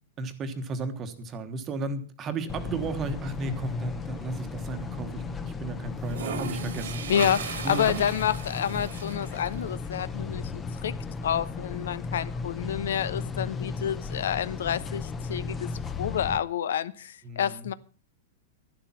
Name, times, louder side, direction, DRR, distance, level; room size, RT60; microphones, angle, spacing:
voice 1, 0.2-7.4 7.6-8.1 17.2-17.7, right 3 dB, 20° right, 1.2 m, -34 dB
sound 1, 2.5-16.4, left 4 dB, 10° left, 0.7 m, -35 dB
sound 2, 3.7-4.5 5.9-9.6, right 6 dB, 90° right, 2.8 m, -37 dB
voice 2, 7.1-10.9 11.2-17.7, left 9 dB, 85° left, 0.9 m, -29 dB
11.5 x 11.5 x 5.7 m
supercardioid pair, 170°, 0 cm